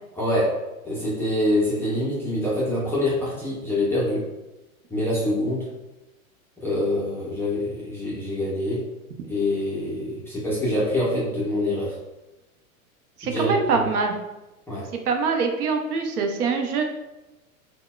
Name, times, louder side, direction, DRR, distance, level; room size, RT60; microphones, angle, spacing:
voice 1, 0.1-0.5 0.8-4.2 4.9-5.7 6.6-8.8 9.3-12.0 13.2-13.9 14.7-14.9, left 1 dB, 5° left, -8 dB, 0.3 m, -25 dB
voice 2, 13.2-14.2 15.1-16.8, right 4 dB, 85° right, 4 dB, 0.6 m, -23 dB
3.8 x 2.1 x 2.2 m, 1.0 s
hypercardioid pair, 110°, 43 cm